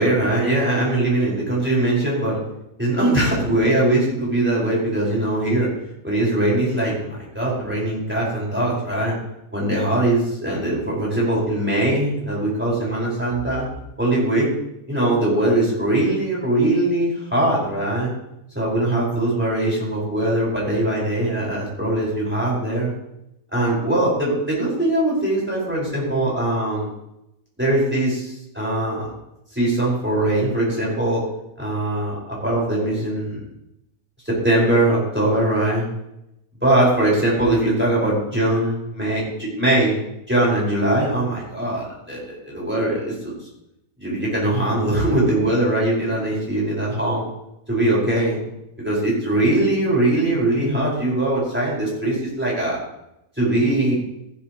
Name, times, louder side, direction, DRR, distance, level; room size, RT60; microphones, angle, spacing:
voice 1, 0.0-2.4 2.8-5.7 6.0-9.2 9.5-13.7 14.0-14.5 14.9-18.1 18.6-22.9 23.5-26.9 27.6-29.1 29.5-31.2 31.6-33.4 34.2-35.9 36.6-39.9 40.3-43.3 44.0-47.3 47.7-48.4 48.8-52.8 53.4-54.0, right 1 dB, 5° right, -6 dB, 5.5 m, -21 dB
15.0 x 12.5 x 3.2 m, 0.86 s
omnidirectional pair, 1.8 m